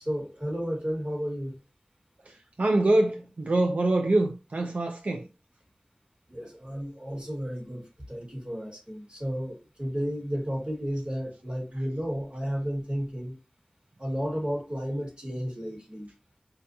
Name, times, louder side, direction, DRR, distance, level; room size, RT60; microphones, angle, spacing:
voice 1, 0.0-1.6 6.3-13.4 14.0-16.1, equal, 40° right, 1.7 m, -32 dB
voice 2, 2.6-5.2, right 2 dB, 85° right, 0.4 m, -24 dB
4.5 x 2.3 x 2.7 m
wide cardioid pair, 50°, 2 cm